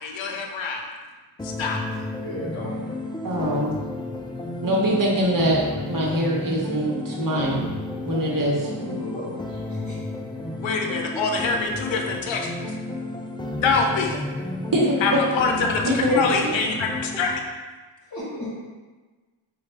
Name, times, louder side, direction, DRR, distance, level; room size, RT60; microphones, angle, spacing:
voice 1, 0.0-0.9 1.4-1.8 10.6-12.4 13.5-14.2 15.0-17.4, left 4 dB, 70° left, 2 dB, 0.7 m, -25 dB
sound 1, 1.4-17.4, left 2 dB, 10° left, 0.3 m, -32 dB
voice 2, 2.1-3.0 8.7-10.0 18.1-18.6, equal, 35° left, -9 dB, 1.1 m, -35 dB
voice 3, 3.2-3.8 4.6-7.6 8.0-8.7 14.7-15.3 15.8-16.5, equal, 45° right, -3 dB, 1.0 m, -23 dB
4.1 x 2.3 x 3.3 m, 1.3 s
cardioid pair, 70°, 48 cm